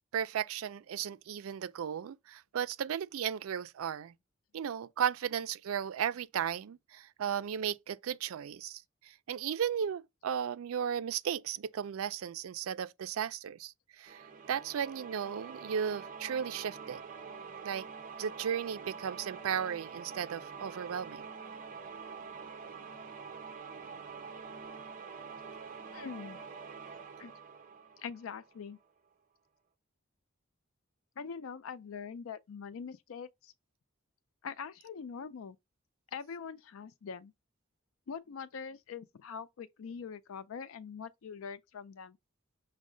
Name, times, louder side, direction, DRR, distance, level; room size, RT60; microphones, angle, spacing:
voice 1, 0.1-4.1 4.5-17.0 17.6-17.9 18.2-21.2, right 8 dB, 85° right, 0.4 m, -35 dB
sound 1, 14.1-28.7, right 5 dB, 40° right, 0.6 m, -46 dB
voice 2, 25.9-26.4 27.2-27.3 28.0-28.8 31.2-33.5 34.4-35.6 36.1-37.3 38.1-42.2, left 6 dB, 80° left, 0.4 m, -43 dB
6.1 x 2.1 x 3.8 m
head